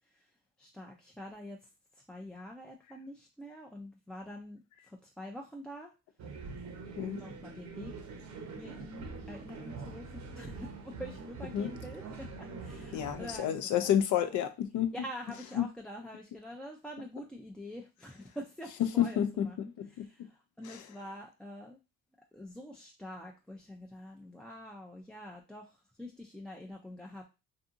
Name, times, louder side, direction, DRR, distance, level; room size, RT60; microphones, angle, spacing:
voice 1, 0.6-1.6 2.1-5.9 7.0-8.1 8.6-14.0 14.9-19.6 19.9-21.8 22.3-27.3, equal, 5° left, 0.3 m, -46 dB
sound 1, 6.2-13.4, right 4 dB, 65° right, 0.7 m, -44 dB
voice 2, 12.9-14.9 15.6-15.7 19.0-20.1 20.7-20.8, left 10 dB, 75° left, 0.5 m, -30 dB
2.6 x 2.6 x 2.4 m
cardioid pair, 90°, 30 cm